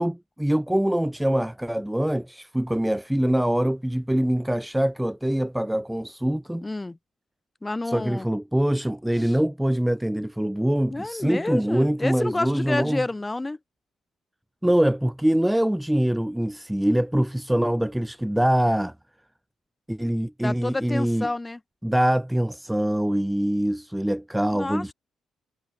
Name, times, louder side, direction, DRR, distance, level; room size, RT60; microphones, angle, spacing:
voice 1, 0.0-6.7 7.9-13.0 14.6-18.9 19.9-21.3 21.8-24.9, right 1 dB, 5° right, 2.2 m, -24 dB
voice 2, 6.6-7.0 7.6-8.3 9.2-9.4 10.9-13.6 20.4-21.6 24.5-24.9, left 2 dB, 15° left, 6.2 m, -29 dB
cardioid pair, 90°, 0 cm